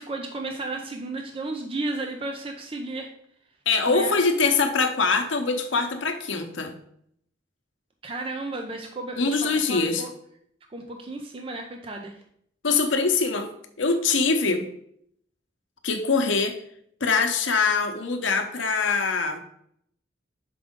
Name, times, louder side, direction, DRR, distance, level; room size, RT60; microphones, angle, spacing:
voice 1, 0.0-3.1 3.9-4.1 8.0-10.1 10.7-12.2, right 2 dB, 30° right, 3 dB, 0.5 m, -33 dB
voice 2, 3.7-6.7 9.2-10.0 12.6-13.5 13.8-14.6 15.8-16.6 17.0-19.4, left 4 dB, 80° left, 6 dB, 0.8 m, -23 dB
6.1 x 5.0 x 3.6 m, 0.69 s
head